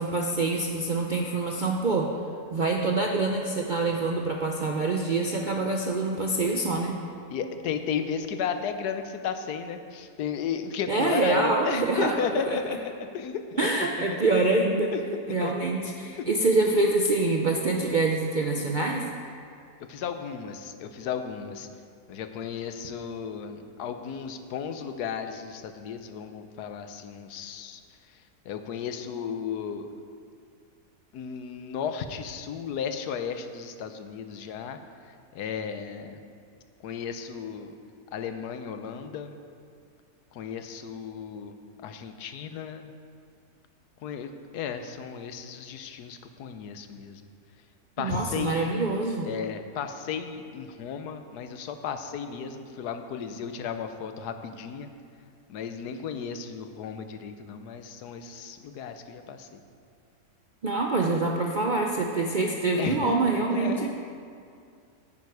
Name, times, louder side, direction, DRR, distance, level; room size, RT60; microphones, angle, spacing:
voice 1, 0.0-2.1 2.5-7.0 10.9-12.6 13.6-14.9 15.3-19.0 48.0-49.3 60.6-63.9, right 3 dB, 55° right, 1 dB, 0.5 m, -25 dB
voice 2, 7.3-13.7 14.0-14.1 14.9-15.7 16.2-16.4 19.9-21.7 22.1-27.8 28.4-29.9 31.1-34.8 35.3-36.2 36.8-37.7 38.1-39.4 40.3-41.5 41.8-42.9 44.0-47.2 48.0-48.6 49.2-54.9 55.5-59.6 62.8-63.9, left 7 dB, 80° left, 8 dB, 1.3 m, -34 dB
9.7 x 9.1 x 4.8 m, 2.4 s
omnidirectional pair, 1.7 m